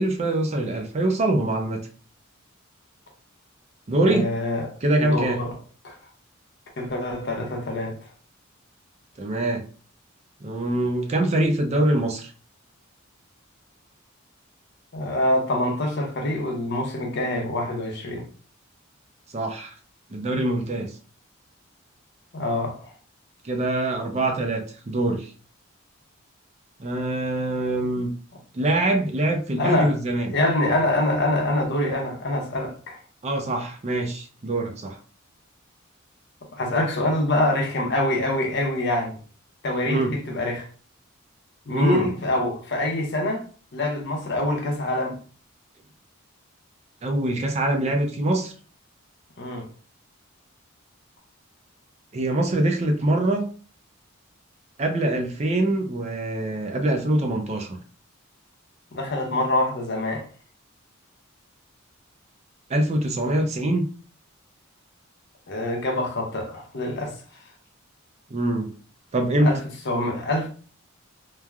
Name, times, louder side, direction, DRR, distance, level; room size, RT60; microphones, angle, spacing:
voice 1, 0.0-1.9 3.9-4.3 4.8-5.4 9.2-9.6 10.4-12.3 19.3-19.7 20.1-21.0 23.4-25.3 26.8-28.1 28.5-30.3 33.2-35.0 39.9-40.1 41.7-42.1 47.0-48.5 52.1-53.5 54.8-57.8 62.7-63.9 68.3-68.7 69.1-69.5, right 1 dB, 30° right, 0.4 m, -24 dB
voice 2, 4.0-4.7 5.0-5.5 5.8-6.0 6.8-8.1 14.9-18.3 22.3-22.9 29.6-29.9 30.3-33.0 36.5-39.2 39.6-40.7 41.7-43.4 43.7-45.2 49.4-49.7 58.9-60.3 65.5-67.4 69.4-69.6 69.9-70.5, left 1 dB, 55° left, 0.7 m, -25 dB
3.1 x 2.2 x 2.3 m
head